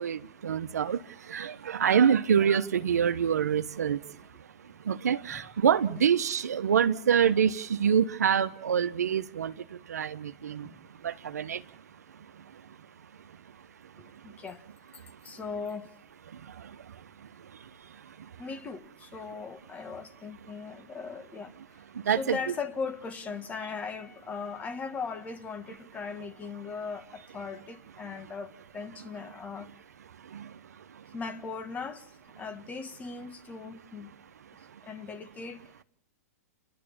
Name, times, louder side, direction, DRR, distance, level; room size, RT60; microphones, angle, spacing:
voice 1, 0.0-11.6 12.1-12.8 13.2-13.3 14.1-14.4 16.3-18.4 21.9-22.4 30.2-31.1 34.7-34.8, right 8 dB, 90° right, 1.1 m, -28 dB
voice 2, 14.0-14.6 14.9-15.9 18.4-29.7 31.1-32.1 32.4-34.1 34.8-35.8, left 5 dB, 15° left, 1.6 m, -39 dB
29.5 x 12.5 x 8.7 m
hypercardioid pair, 135°, 8 cm